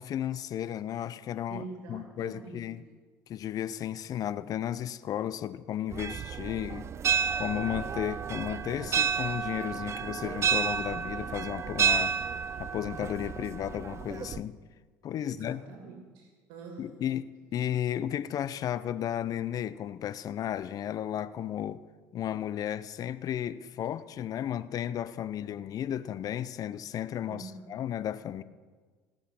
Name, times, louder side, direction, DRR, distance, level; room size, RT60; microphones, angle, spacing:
voice 1, 0.0-1.6 1.9-2.8 3.3-6.9 7.4-12.2 12.6-14.6 15.0-15.6 16.8-21.8 22.1-28.4, left 10 dB, 50° left, 0.6 m, -34 dB
voice 2, 1.5-2.7 15.2-17.0 27.3-27.7, right 4 dB, 70° right, 2.3 m, -45 dB
sound 1, 5.9-14.4, right 7 dB, 35° right, 0.5 m, -31 dB
17.5 x 6.4 x 5.8 m
hypercardioid pair, 80°, 8 cm